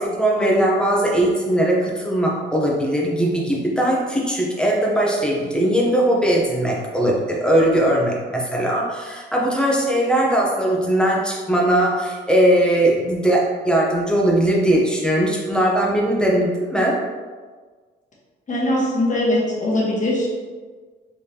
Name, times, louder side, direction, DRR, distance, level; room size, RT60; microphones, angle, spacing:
voice 1, 0.0-17.0, right 1 dB, 5° left, -3 dB, 0.8 m, -19 dB
voice 2, 18.5-20.3, left 1 dB, 40° left, -5 dB, 1.3 m, -21 dB
3.5 x 3.3 x 2.8 m, 1.5 s
cardioid pair, 90°, 20 cm